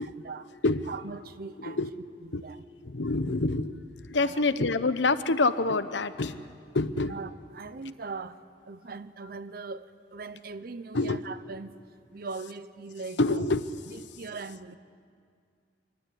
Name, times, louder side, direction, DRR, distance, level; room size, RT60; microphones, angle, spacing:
voice 1, 0.0-0.5 0.9-1.8 2.2-2.6 4.2-4.4 7.1-11.8 12.1-13.4 13.9-14.8, right 4 dB, 55° right, 0.7 m, -40 dB
voice 2, 1.6-1.9 2.3-2.5 2.8-3.8 4.1-6.4 6.7-7.2 10.9-11.2 13.2-13.6, left 3 dB, 85° left, 0.9 m, -26 dB
25.5 x 16.5 x 9.9 m
head